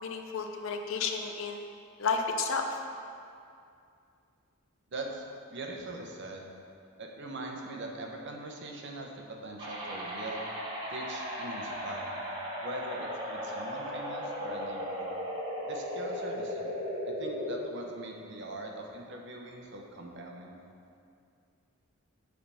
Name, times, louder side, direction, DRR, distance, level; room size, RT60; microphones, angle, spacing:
voice 1, 0.0-1.7 2.0-2.6, left 5 dB, 65° left, 4 dB, 0.5 m, -32 dB
voice 2, 4.9-5.2 5.5-6.4 7.0-10.5 10.9-12.1 12.6-15.1 15.6-16.8 17.1-20.6, right 2 dB, 55° right, 1 dB, 0.8 m, -42 dB
sound 1, 9.6-17.6, equal, 20° right, 1.4 m, -36 dB
7.7 x 3.4 x 5.5 m, 2.5 s
head